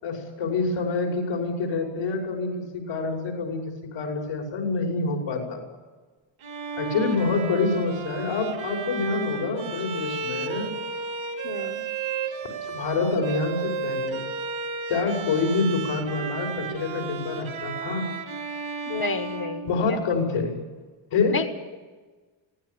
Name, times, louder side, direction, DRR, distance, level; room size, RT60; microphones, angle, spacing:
voice 1, 0.0-5.6 6.8-10.7 12.3-14.3 14.9-18.1 19.7-20.6 21.1-21.4, left 4 dB, 85° left, 1 dB, 6.0 m, -27 dB
Bowed string instrument, 6.4-20.3, right 4 dB, 80° right, 2.9 m, -33 dB
voice 2, 11.4-11.8 18.9-20.0 21.3-21.5, left 4 dB, 45° left, 6 dB, 1.4 m, -30 dB
24.0 x 18.0 x 8.5 m, 1.3 s
wide cardioid pair, 175°, 49 cm